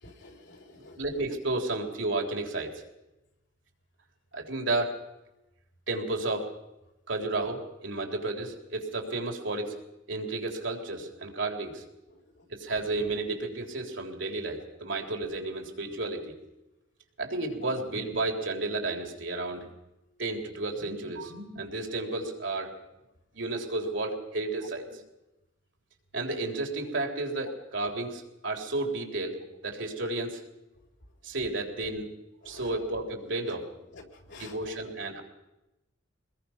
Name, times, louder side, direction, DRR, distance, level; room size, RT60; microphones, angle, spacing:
voice 1, 0.0-1.0 12.1-12.4 32.4-32.8 33.5-33.6 33.9-34.8, left 2 dB, 65° left, 2 dB, 3.7 m, -49 dB
voice 2, 0.8-2.8 4.3-5.0 5.9-6.5 7.1-9.7 10.1-11.8 12.5-16.4 17.2-19.7 20.2-22.7 23.3-25.0 26.1-30.4 31.2-32.1 32.5-33.7 34.3-35.2, right 2 dB, 70° right, 2 dB, 3.7 m, -32 dB
24.5 x 20.5 x 5.9 m, 0.97 s
head